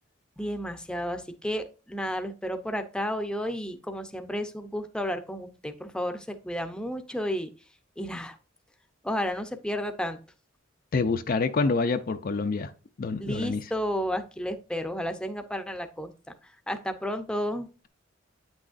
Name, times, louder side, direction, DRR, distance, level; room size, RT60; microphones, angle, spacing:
voice 1, 0.4-7.5 8.0-8.4 9.0-10.2 13.2-16.1 16.7-17.7, equal, 5° left, 0.6 m, -32 dB
voice 2, 10.9-12.7 13.0-13.6, left 4 dB, 45° left, 0.5 m, -26 dB
8.9 x 6.1 x 2.5 m
head